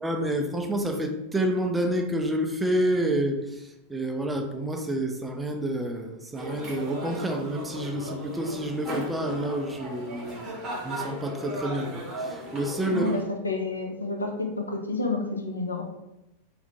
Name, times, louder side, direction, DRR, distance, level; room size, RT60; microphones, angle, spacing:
voice 1, 0.0-13.2, right 1 dB, 10° right, 4 dB, 0.3 m, -29 dB
sound 1, 6.3-13.2, right 1 dB, 25° right, 0.8 m, -36 dB
voice 2, 12.8-15.8, left 3 dB, 80° left, 2 dB, 0.4 m, -29 dB
2.5 x 2.1 x 2.8 m, 0.90 s
figure-of-eight pair, 90°, 0 cm